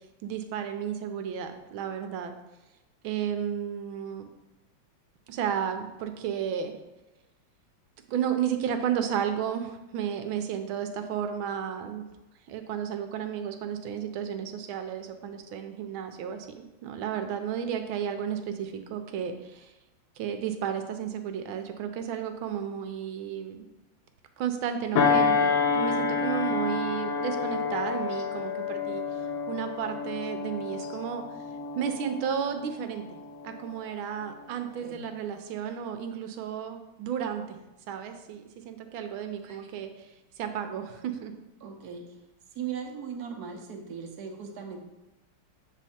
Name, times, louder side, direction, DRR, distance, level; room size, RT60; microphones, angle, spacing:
voice 1, 0.2-2.3 3.0-4.2 5.3-6.7 8.1-12.1 12.5-19.7 20.2-23.7 24.4-25.4 25.7-29.0 29.5-31.2 31.7-33.2 33.4-37.6 37.9-39.9 40.4-41.3, right 8 dB, 85° right, 7 dB, 1.5 m, -33 dB
sound 1, 25.0-33.8 34.3-34.5, left 5 dB, 90° left, 1.4 m, -29 dB
voice 2, 41.6-42.0 42.5-44.8, right 7 dB, 60° right, 2 dB, 1.1 m, -38 dB
7.4 x 3.5 x 4.2 m, 0.97 s
omnidirectional pair, 2.2 m